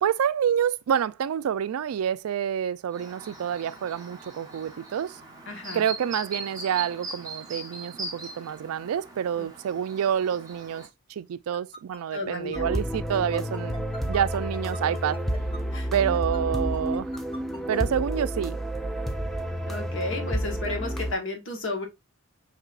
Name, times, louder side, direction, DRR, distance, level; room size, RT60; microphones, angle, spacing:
voice 1, 0.0-5.2 5.7-13.7 14.1-15.2 15.9-17.1 17.7-18.6, right 9 dB, 85° right, 0.3 m, -28 dB
Chirp tweet, 2.9-10.9, right 3 dB, 15° right, 1.0 m, -40 dB
voice 2, 5.5-5.9 12.1-12.6 15.7-15.9 19.7-21.9, left 2 dB, 60° left, 1.2 m, -33 dB
sound 1, 11.5-17.8, left 1 dB, 25° left, 0.7 m, -43 dB
sound 2, 12.5-21.1, equal, ahead, 0.3 m, -30 dB
5.9 x 2.9 x 2.4 m
head